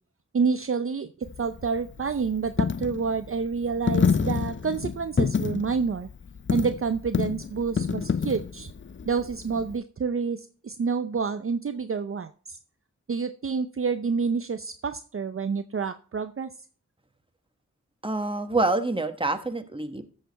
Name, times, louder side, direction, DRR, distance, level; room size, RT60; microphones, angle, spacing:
voice 1, 0.3-1.1 1.4-6.1 6.5-8.7 9.1-12.6 13.1-16.5, right 5 dB, 45° right, 10 dB, 0.6 m, -28 dB
Coin (dropping), 1.2-9.8, left 6 dB, 40° left, 0.5 m, -28 dB
voice 2, 18.0-20.1, right 2 dB, 15° right, 7 dB, 1.4 m, -26 dB
13.5 x 6.6 x 4.1 m, 0.41 s
wide cardioid pair, 55°, 29 cm